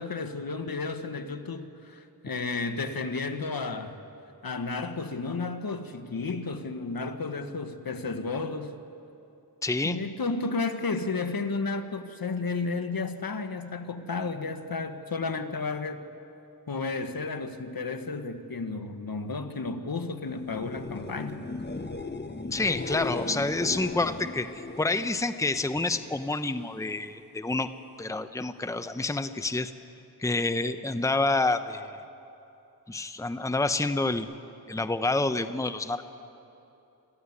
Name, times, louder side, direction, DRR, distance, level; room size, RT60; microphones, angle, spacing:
voice 1, 0.0-4.0 4.4-8.8 9.8-16.1 16.7-21.4, left 3 dB, 60° left, 1.4 m, -32 dB
voice 2, 9.6-10.0 22.5-24.5 24.8-27.7 28.0-29.7 30.2-31.9 32.9-34.3 34.7-36.0, left 2 dB, 10° left, 0.9 m, -28 dB
sound 1, 20.4-26.2 26.5-27.1 34.2-34.3, left 3 dB, 25° left, 1.1 m, -37 dB
24.0 x 14.5 x 9.8 m
cardioid pair, 50°, 39 cm